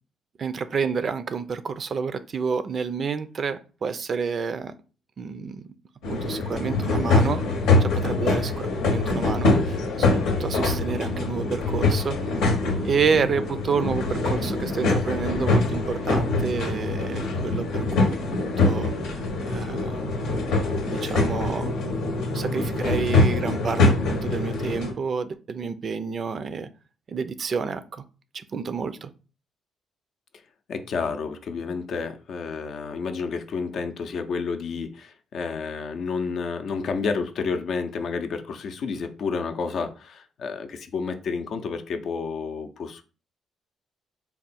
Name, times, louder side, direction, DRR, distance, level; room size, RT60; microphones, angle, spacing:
voice 1, 0.4-4.7 5.2-5.6 6.1-7.4 7.8-12.2 12.8-18.9 19.5-20.1 20.9-21.8 22.3-26.7 27.1-28.0 28.3-29.1, right 5 dB, 50° right, 0.4 m, -29 dB
sound 1, 6.0-24.9, left 2 dB, 90° left, 0.8 m, -24 dB
voice 2, 30.7-43.0, left 5 dB, 65° left, 0.5 m, -30 dB
3.5 x 2.2 x 4.1 m
cardioid pair, 90°, 0 cm